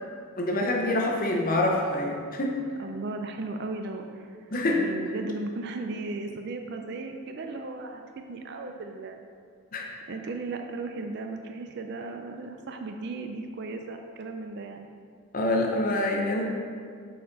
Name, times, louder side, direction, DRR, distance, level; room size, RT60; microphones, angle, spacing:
voice 1, 0.4-2.6 4.5-4.9 9.7-9.9 15.3-16.4, left 1 dB, 40° left, 0 dB, 0.6 m, -26 dB
voice 2, 2.8-4.4 4.7-9.2 10.1-14.9, right 3 dB, 50° right, 5 dB, 0.4 m, -36 dB
6.6 x 4.3 x 3.9 m, 2.1 s
head